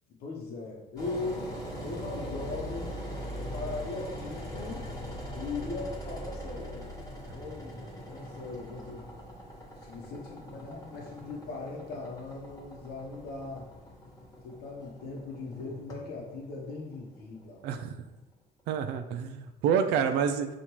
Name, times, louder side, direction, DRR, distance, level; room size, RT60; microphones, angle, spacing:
voice 1, 0.2-1.5 1.8-3.0 3.4-4.9 5.3-9.1 9.8-13.7 14.4-17.6 19.8-20.0, left 3 dB, 70° left, -2 dB, 0.9 m, -39 dB
Engine, 1.0-17.9, equal, 20° left, 1.2 m, -41 dB
voice 2, 17.6-18.0 18.7-20.5, right 7 dB, 80° right, 7 dB, 0.4 m, -28 dB
6.8 x 2.5 x 3.0 m, 0.99 s
cardioid pair, 110°, 17 cm